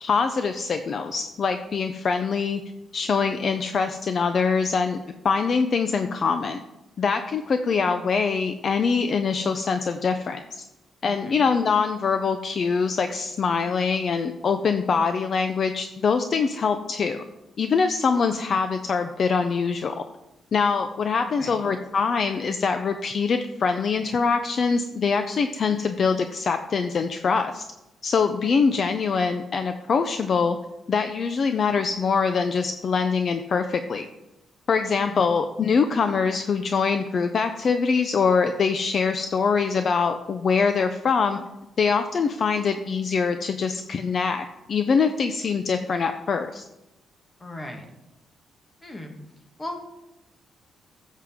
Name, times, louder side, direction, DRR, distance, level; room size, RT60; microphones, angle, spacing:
voice 1, 0.0-2.6 2.9-6.6 7.0-10.6 11.0-17.2 17.6-20.0 20.5-27.6 28.0-30.6 30.9-34.1 34.7-41.4 41.8-46.6, left 5 dB, 40° left, 8 dB, 0.5 m, -24 dB
voice 2, 11.0-11.4 21.4-21.6 35.1-35.2 47.4-47.9 48.8-49.1 49.6-50.0, left 1 dB, 15° left, 3 dB, 1.3 m, -37 dB
14.0 x 7.5 x 3.6 m, 0.95 s
cardioid pair, 165°, 0 cm